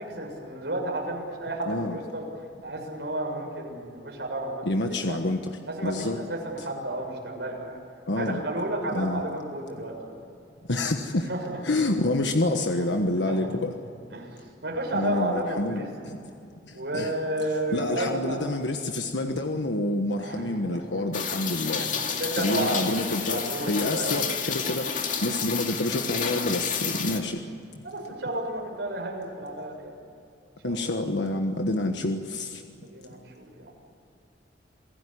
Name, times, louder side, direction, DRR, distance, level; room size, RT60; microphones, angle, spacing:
voice 1, 0.0-2.3 2.6-5.2 5.7-7.8 8.2-10.2 11.3-11.6 12.8-12.9 13.3-13.6 14.1-14.3 14.6-15.9 16.7-18.5 20.1-20.8 21.8-24.3 27.8-30.0 30.6-30.8 32.8-33.7, right 1 dB, 75° right, 1 dB, 7.0 m, -32 dB
voice 2, 1.7-2.0 4.6-6.2 6.6-6.7 8.1-8.4 8.9-9.2 10.7-11.3 11.6-13.7 14.9-16.2 16.7-17.1 17.7-21.9 22.3-27.4 30.6-32.6, left 2 dB, 90° left, 5 dB, 1.4 m, -28 dB
Rain, 21.1-27.2, left 6 dB, 45° left, 2.5 m, -30 dB
28.0 x 17.0 x 9.9 m, 2.5 s
head